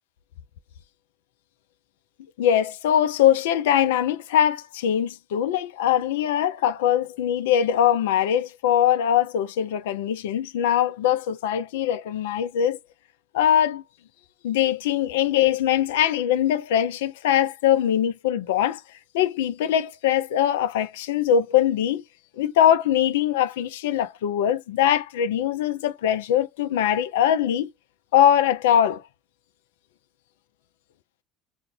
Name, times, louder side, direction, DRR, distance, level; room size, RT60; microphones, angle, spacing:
voice 1, 2.4-12.8 13.3-13.8 14.4-18.8 19.1-22.0 22.4-27.7 28.1-29.0, left 10 dB, 75° left, 0.3 m, -22 dB
2.4 x 2.1 x 2.6 m
hypercardioid pair, 65°, 0 cm